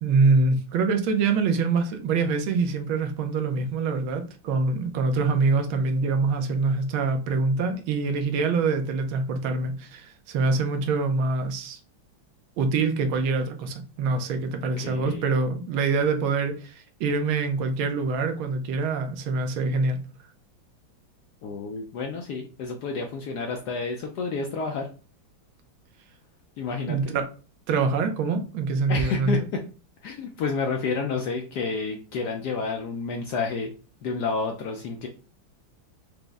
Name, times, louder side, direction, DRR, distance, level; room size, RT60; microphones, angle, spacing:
voice 1, 0.0-11.8 12.6-20.0 26.9-27.3 27.7-29.4, right 4 dB, 85° right, 1.5 m, -25 dB
voice 2, 14.8-15.2 21.4-24.9 26.6-27.1 28.9-29.6 30.0-33.7 34.0-35.1, left 4 dB, 75° left, 0.9 m, -30 dB
5.0 x 2.0 x 3.4 m
omnidirectional pair, 2.2 m